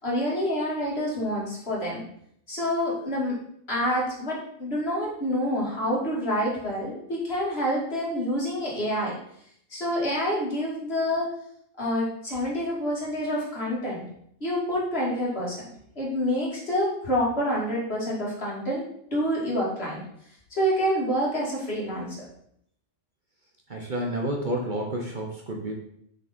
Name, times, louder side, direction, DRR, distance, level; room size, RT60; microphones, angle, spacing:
voice 1, 0.0-2.0 2.5-3.3 3.7-9.1 9.7-11.3 11.8-14.0 14.4-15.6 16.0-18.8 19.1-20.0 20.5-22.2, equal, 50° left, -5 dB, 2.9 m, -27 dB
voice 2, 23.7-25.7, right 1 dB, 40° right, 0 dB, 1.1 m, -30 dB
7.0 x 5.8 x 4.4 m, 0.69 s
omnidirectional pair, 1.3 m